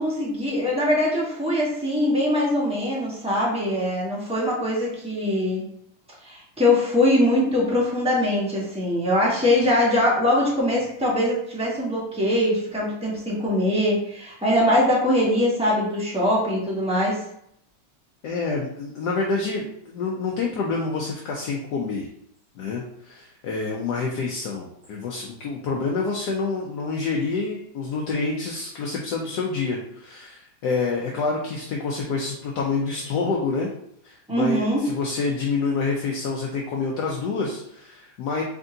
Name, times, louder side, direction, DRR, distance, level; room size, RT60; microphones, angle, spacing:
voice 1, 0.0-5.6 6.2-17.2 34.3-34.9, left 1 dB, 5° right, -5 dB, 1.1 m, -22 dB
voice 2, 18.2-22.1 22.6-33.7 34.0-38.4, left 4 dB, 70° left, -1 dB, 1.1 m, -27 dB
4.0 x 3.5 x 3.8 m, 0.73 s
omnidirectional pair, 2.2 m